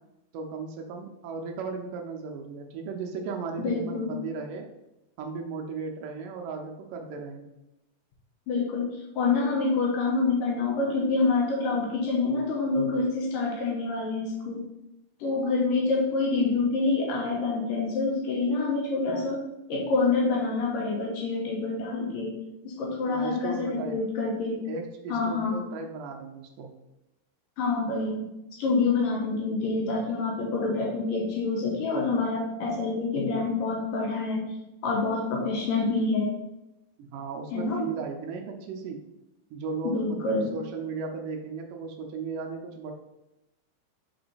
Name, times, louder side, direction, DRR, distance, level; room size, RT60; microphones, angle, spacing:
voice 1, 0.3-4.7 5.2-7.5 23.1-24.0 24.7-26.7 37.0-39.0 39.5-42.9, right 4 dB, 80° right, 3 dB, 2.0 m, -36 dB
voice 2, 3.6-4.2 8.5-14.6 15.2-19.4 19.7-22.3 22.6-24.6 25.1-25.6 27.6-34.5 34.8-36.3 37.5-37.8 39.8-40.5, left 3 dB, 70° left, -2 dB, 2.5 m, -27 dB
5.7 x 4.2 x 3.9 m, 0.94 s
omnidirectional pair, 4.4 m